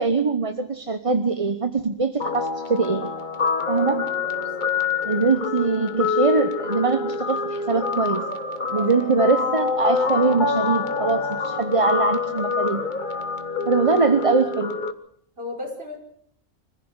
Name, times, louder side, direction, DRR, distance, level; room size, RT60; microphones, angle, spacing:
voice 1, 0.0-3.1 3.7-4.1 5.0-8.2 8.7-12.8 13.7-14.8, right 4 dB, 25° right, 8 dB, 1.0 m, -22 dB
Guitar, 2.2-14.9, left 4 dB, 35° left, 1.5 m, -26 dB
voice 2, 3.7-4.0 4.6-4.7 8.7-9.0 13.5-14.2 15.4-16.0, left 2 dB, 45° right, 2 dB, 5.6 m, -37 dB
25.5 x 15.5 x 8.2 m, 0.64 s
omnidirectional pair, 1.4 m